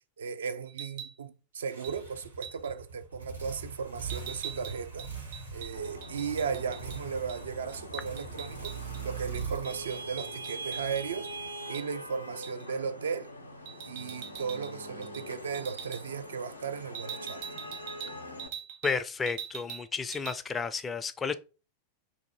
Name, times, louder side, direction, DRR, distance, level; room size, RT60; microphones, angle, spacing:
voice 1, 0.2-5.2 5.5-13.3 13.9-17.4, right 6 dB, 65° right, 0.3 m, -36 dB
sound 1, 0.7-1.2 1.8-2.0 2.4-2.7 4.1-7.0 7.3-7.4 7.7-9.0 9.3-11.3 11.7-11.9 12.4-12.7 13.7-14.7 15.0-15.3 15.5-16.0 16.9-19.0 19.3-19.9 20.1-20.4, right 8 dB, 50° right, 0.7 m, -43 dB
sound 2, 1.7-11.5, right 5 dB, 90° right, 1.5 m, -42 dB
Vehicle horn car horn honking / Traffic noise roadway noise, 5.7-18.5, right 1 dB, 85° left, 0.5 m, -43 dB
voice 2, 18.8-21.3, left 5 dB, 20° left, 0.3 m, -32 dB
2.7 x 2.5 x 3.9 m
figure-of-eight pair, 90°, 0 cm